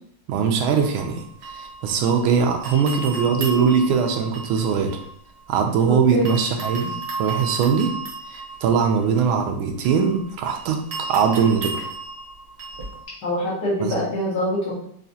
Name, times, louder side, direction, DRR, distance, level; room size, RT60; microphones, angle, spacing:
voice 1, 0.3-5.0 5.5-7.9 8.3-11.9 13.8-13.9, right 6 dB, 80° right, 4 dB, 1.4 m, -21 dB
sound 1, 0.8-2.3 2.6-5.8 6.3-13.0, right 3 dB, 50° right, 0.9 m, -35 dB
voice 2, 5.9-6.3 13.2-14.7, equal, 60° left, -7 dB, 2.0 m, -24 dB
4.8 x 2.4 x 2.7 m, 0.64 s
omnidirectional pair, 2.3 m